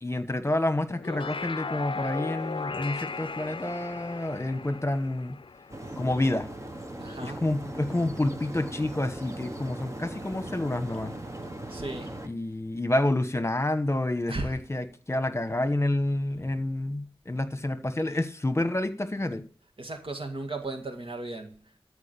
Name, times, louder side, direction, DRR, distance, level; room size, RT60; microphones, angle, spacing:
voice 1, 0.0-5.4 6.0-6.5 7.2-11.1 12.2-19.4, left 1 dB, 30° left, 1.3 m, -29 dB
sound 1, 0.9-6.4, left 4 dB, 60° left, 0.5 m, -37 dB
sound 2, 5.7-12.3, right 1 dB, 30° right, 1.6 m, -39 dB
voice 2, 7.0-7.5 8.0-8.1 10.9-11.0 11.7-12.2 14.3-14.6 18.0-18.3 19.8-21.8, right 2 dB, 65° right, 2.0 m, -37 dB
13.5 x 4.8 x 6.9 m
wide cardioid pair, 45°, 10 cm